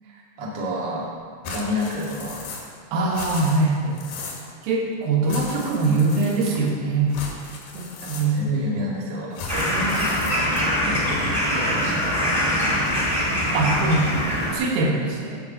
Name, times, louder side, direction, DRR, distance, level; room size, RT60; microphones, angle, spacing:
voice 1, 0.0-1.1 1.5-2.4 5.9-6.0 8.0-13.2, left 1 dB, 55° right, -5 dB, 1.2 m, -30 dB
sound 1, 1.4-2.8 3.0-4.5 5.3-6.7 7.1-8.6 9.3-10.8, left 4 dB, 65° left, 3.1 m, -36 dB
voice 2, 2.9-4.0 4.6-7.1 7.7-8.4 13.5-14.1 14.5-15.4, right 3 dB, 85° right, -1 dB, 4.3 m, -22 dB
sound 2, 9.5-14.5, equal, 5° left, 1.8 m, -23 dB
11.5 x 5.3 x 7.9 m, 2.1 s
omnidirectional pair, 5.8 m